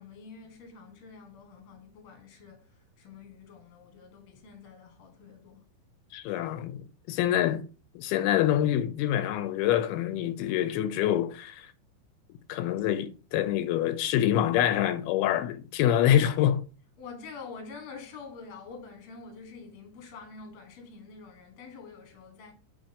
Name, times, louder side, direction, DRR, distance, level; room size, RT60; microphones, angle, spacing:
voice 1, 0.0-5.6 17.0-22.5, left 4 dB, 50° left, 1.8 m, -47 dB
voice 2, 6.1-7.6 8.0-11.7 12.5-16.6, left 11 dB, 85° left, 2.5 m, -26 dB
7.5 x 4.2 x 3.5 m
omnidirectional pair, 4.4 m